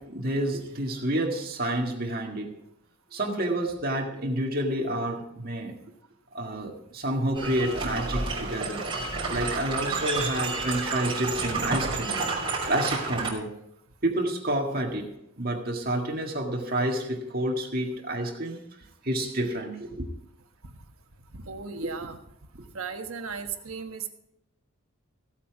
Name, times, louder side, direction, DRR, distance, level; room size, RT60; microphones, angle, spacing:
voice 1, 0.0-2.5 3.1-5.7 6.3-8.8 9.3-12.2 12.6-13.6 14.0-15.1 15.4-18.6 19.0-20.1 21.8-22.1, right 1 dB, 45° right, 1.8 m, -29 dB
sound 1, 7.3-13.3, right 3 dB, 25° right, 3.3 m, -30 dB
voice 2, 21.3-22.2 22.6-24.1, right 5 dB, 75° right, 1.2 m, -36 dB
16.0 x 8.4 x 4.8 m
head